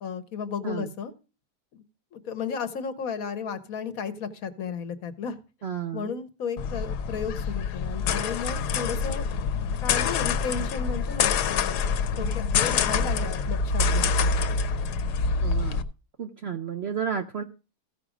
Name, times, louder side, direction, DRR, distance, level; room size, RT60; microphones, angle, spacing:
voice 1, 0.0-1.1 1.7-1.8 2.1-5.4 5.9-9.2 9.8-14.3, left 6 dB, 65° left, 11 dB, 1.2 m, -34 dB
voice 2, 5.6-6.1 15.4-15.8 16.2-17.4, right 7 dB, 60° right, 6 dB, 0.7 m, -32 dB
sound 1, 6.6-15.8, left 5 dB, 80° left, 1.3 m, -26 dB
15.0 x 5.0 x 4.9 m, 0.33 s
omnidirectional pair, 1.7 m